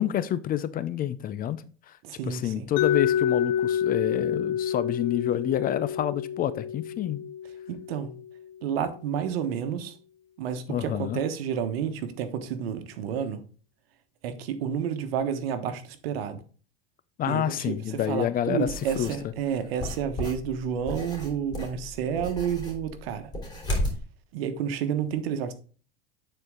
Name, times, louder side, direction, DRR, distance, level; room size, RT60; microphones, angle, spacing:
voice 1, 0.0-1.6 2.3-7.2 10.7-11.2 17.2-18.7 19.0-19.1, left 11 dB, 30° left, 0.5 m, -28 dB
voice 2, 2.0-2.7 7.7-8.1 8.6-10.0 10.4-13.4 14.2-16.4 17.2-23.3 24.3-25.5, right 8 dB, 85° right, 1.3 m, -30 dB
Mallet percussion, 2.8-8.6, left 9 dB, 70° left, 0.7 m, -28 dB
sound 1, 18.7-19.2 19.8-24.0, left 1 dB, 15° left, 3.2 m, -33 dB
9.3 x 4.5 x 3.7 m
supercardioid pair, 120°, 29 cm